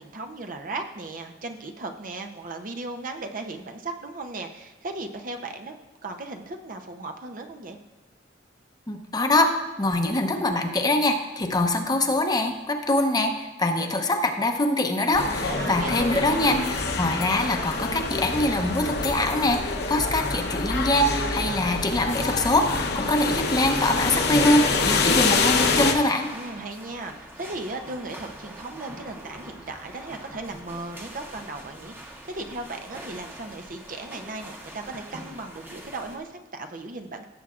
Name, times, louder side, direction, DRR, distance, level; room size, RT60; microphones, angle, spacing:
voice 1, 0.0-7.8 15.5-16.5 26.3-37.3, right 2 dB, 50° right, 5 dB, 0.7 m, -36 dB
voice 2, 8.9-9.5 9.8-26.3, left 1 dB, 20° left, 5 dB, 0.8 m, -24 dB
sound 1, 15.1-25.9, left 3 dB, 65° left, 0.9 m, -26 dB
sound 2, 23.9-36.2, right 1 dB, 10° right, 1.0 m, -43 dB
16.5 x 7.3 x 2.5 m, 1.2 s
head